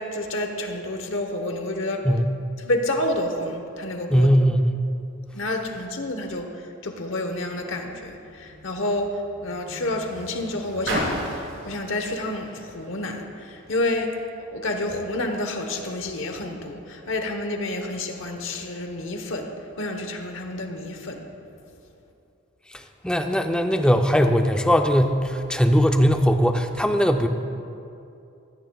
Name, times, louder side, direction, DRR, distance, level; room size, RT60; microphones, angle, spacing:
voice 1, 0.0-2.1 2.6-4.3 5.3-6.5 6.8-14.1 14.5-21.2, left 1 dB, 65° left, 4 dB, 1.1 m, -29 dB
voice 2, 4.1-4.7 23.0-27.3, equal, 5° left, 5 dB, 0.5 m, -19 dB
Car, 7.6-13.8 14.7-14.8, equal, 55° right, 3.2 m, -36 dB
16.0 x 14.0 x 2.3 m, 2.6 s
head